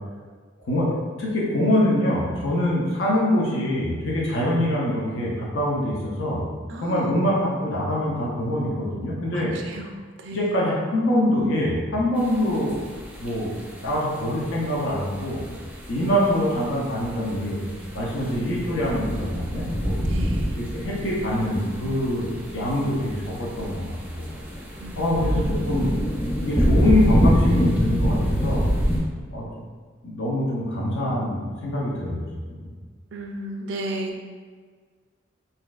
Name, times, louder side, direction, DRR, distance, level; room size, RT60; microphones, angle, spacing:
voice 1, 1.2-6.5 6.8-9.5 10.3-12.8 13.2-13.5 13.8-15.4 15.9-17.6 17.9-20.0 20.6-24.3 25.0-26.0 26.4-28.7 29.3-29.5 30.0-32.7, left 1 dB, 80° left, -4 dB, 0.7 m, -24 dB
voice 2, 6.7-7.2 9.3-9.9 10.2-10.6 20.0-20.6 24.8-25.3 33.1-34.2, right 1 dB, 70° right, 2 dB, 0.4 m, -34 dB
sound 1, 12.2-29.0, equal, 10° right, 0.5 m, -26 dB
4.1 x 2.6 x 2.3 m, 1.5 s
head